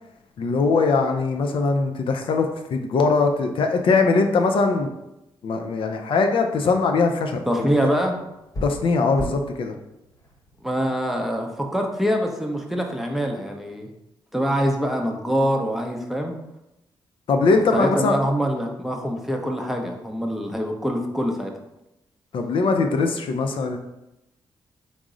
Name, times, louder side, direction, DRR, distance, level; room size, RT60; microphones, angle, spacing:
voice 1, 0.4-4.9 5.4-7.7 8.6-9.7 17.3-18.2 22.3-23.8, left 4 dB, 70° left, 4 dB, 0.4 m, -21 dB
voice 2, 7.5-8.1 10.6-13.9 14.3-16.4 17.5-21.5, equal, 5° right, 2 dB, 0.6 m, -24 dB
sound 1, 8.0-11.5, equal, 40° left, 0.9 m, -39 dB
3.6 x 2.0 x 3.7 m, 0.90 s
cardioid pair, 70°, 9 cm